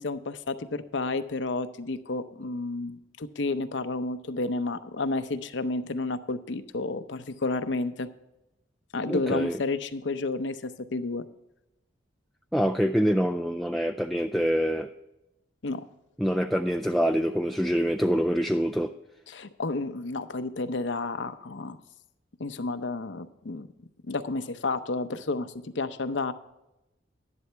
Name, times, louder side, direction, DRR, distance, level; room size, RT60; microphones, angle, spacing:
voice 1, 0.0-8.1 8.9-11.3 15.6-15.8 19.3-21.8 22.4-23.7 24.1-26.3, left 3 dB, 75° left, 11 dB, 0.7 m, -31 dB
voice 2, 9.0-9.6 12.5-14.9 16.2-18.9, equal, ahead, 5 dB, 0.3 m, -25 dB
11.0 x 11.0 x 3.4 m, 0.93 s
head